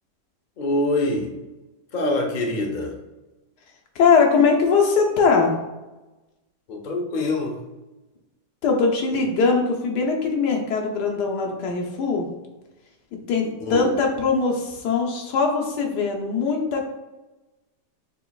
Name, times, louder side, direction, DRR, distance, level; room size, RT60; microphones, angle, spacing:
voice 1, 0.6-1.3 1.9-2.9 6.7-7.6 13.6-13.9, left 2 dB, 50° left, 0 dB, 0.5 m, -24 dB
voice 2, 3.9-5.5 8.6-12.3 13.3-16.9, left 4 dB, 75° left, 1 dB, 1.4 m, -21 dB
6.8 x 3.0 x 2.3 m, 1.1 s
omnidirectional pair, 1.8 m